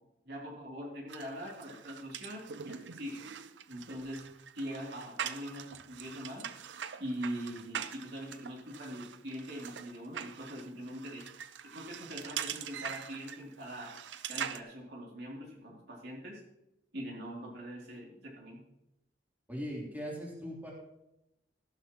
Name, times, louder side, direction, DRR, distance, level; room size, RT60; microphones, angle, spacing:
voice 1, 0.2-3.2 3.7-4.3 4.5-6.5 7.0-11.2 11.7-13.9 14.3-16.4 16.9-18.6, equal, 65° right, -2 dB, 3.0 m, -42 dB
sound 1, 1.1-14.6, right 8 dB, 90° right, 0.6 m, -43 dB
voice 2, 19.5-20.7, equal, 10° right, -4 dB, 3.3 m, -39 dB
13.5 x 12.0 x 3.0 m, 0.87 s
head